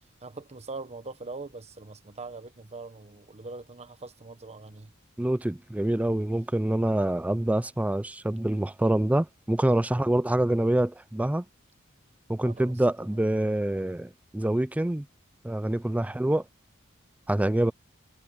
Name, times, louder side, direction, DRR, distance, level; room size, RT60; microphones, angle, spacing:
voice 1, 0.2-4.9 12.4-12.8 13.1-13.3 16.1-16.2, right 3 dB, 30° right, 1.1 m, -42 dB
voice 2, 5.2-11.4 12.3-15.1 15.4-16.4 17.3-17.7, right 1 dB, 5° right, 0.3 m, -26 dB
head